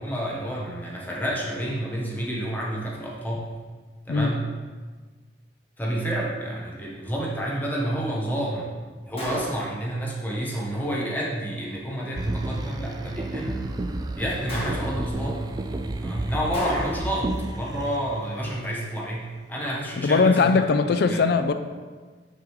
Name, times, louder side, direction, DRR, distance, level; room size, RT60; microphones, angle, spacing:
voice 1, 0.0-3.5 4.0-4.5 5.8-8.7 9.0-13.7 14.1-15.4 16.0-20.6 21.1-21.3, right 1 dB, 10° left, -4 dB, 1.1 m, -30 dB
Gunshot gunfire, 9.2-9.9 14.5-15.2 16.5-17.2, equal, 35° left, 1.3 m, -33 dB
sound 1, 12.2-19.1 19.6-19.7, right 1 dB, 20° right, 0.3 m, -31 dB
voice 2, 20.0-21.5, left 4 dB, 60° left, 9 dB, 0.4 m, -20 dB
6.5 x 5.1 x 3.1 m, 1.4 s
head